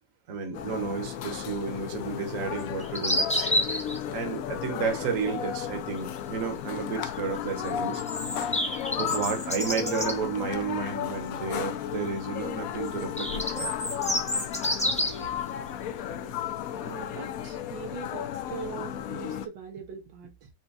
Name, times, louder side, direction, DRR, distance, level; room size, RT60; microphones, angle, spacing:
voice 1, 0.3-3.5 4.1-8.0 9.0-13.7, right 5 dB, 50° right, 1.4 m, -32 dB
sound 1, 0.5-19.5, left 10 dB, 75° left, 0.8 m, -34 dB
sound 2, 2.6-4.0 7.6-10.2 12.9-15.3, left 1 dB, 10° left, 0.3 m, -29 dB
voice 2, 16.8-20.5, right 7 dB, 85° right, 1.7 m, -41 dB
5.7 x 2.2 x 4.0 m
omnidirectional pair, 2.0 m